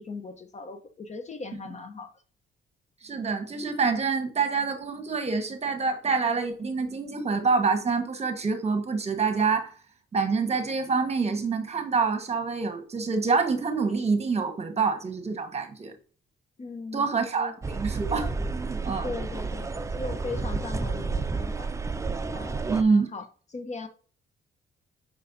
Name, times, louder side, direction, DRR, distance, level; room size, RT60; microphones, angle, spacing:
voice 1, 0.0-2.1 16.6-17.5 19.0-21.7 22.3-23.9, left 3 dB, 35° left, 0.8 m, -38 dB
voice 2, 3.0-9.7 10.1-15.9 16.9-19.1 22.7-23.1, right 4 dB, 30° right, 1.3 m, -26 dB
sound 1, 17.6-22.8, right 4 dB, 15° right, 0.5 m, -31 dB
6.7 x 5.4 x 2.6 m
cardioid pair, 90°, 20 cm